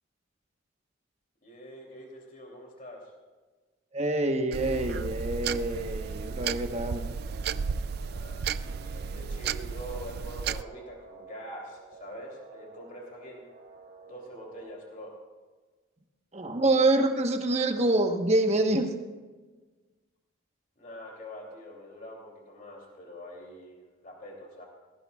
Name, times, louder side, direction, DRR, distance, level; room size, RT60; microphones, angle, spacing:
voice 1, 1.4-3.1 8.1-13.5 14.0-15.2 20.8-24.6, equal, 40° left, -1 dB, 3.0 m, -45 dB
voice 2, 3.9-7.1 16.3-18.9, right 2 dB, 35° right, 4 dB, 1.1 m, -26 dB
sound 1, 4.5-10.6, right 6 dB, 50° right, 0.3 m, -33 dB
sound 2, 4.6-14.7, right 4 dB, 85° right, 2.2 m, -51 dB
19.5 x 15.5 x 2.4 m, 1.3 s
head